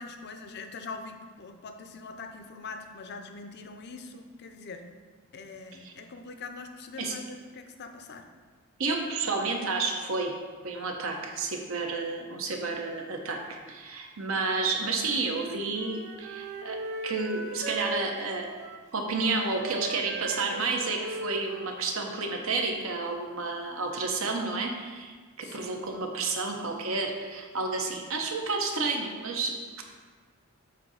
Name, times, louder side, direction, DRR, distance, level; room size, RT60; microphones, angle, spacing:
voice 1, 0.0-4.9 5.3-8.3 25.4-25.8, left 4 dB, 50° left, 6 dB, 0.5 m, -43 dB
voice 2, 8.8-10.3 10.6-16.8 17.0-18.5 18.9-29.5, right 3 dB, 65° right, 2 dB, 0.8 m, -31 dB
Wind instrument woodwind instrument, 15.2-23.0, right 2 dB, 50° right, 0.4 m, -39 dB
7.6 x 2.7 x 5.6 m, 1.5 s
head